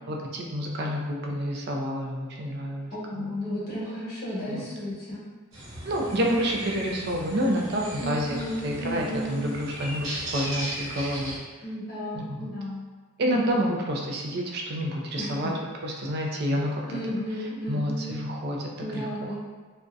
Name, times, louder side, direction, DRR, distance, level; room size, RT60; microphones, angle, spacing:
voice 1, 0.1-3.3 4.5-4.6 5.8-8.4 8.6-11.4 12.1-12.4 13.2-15.5 15.8-16.7 17.7-19.4, equal, 55° right, 0 dB, 0.4 m, -29 dB
voice 2, 2.9-5.2 8.0-9.4 11.6-12.8 13.4-13.7 15.2-15.3 16.9-18.1 18.8-19.4, equal, 50° left, -9 dB, 1.0 m, -33 dB
sound 1, 5.5-11.4, right 1 dB, 80° right, 0.9 m, -37 dB
2.6 x 2.1 x 2.3 m, 1.4 s
head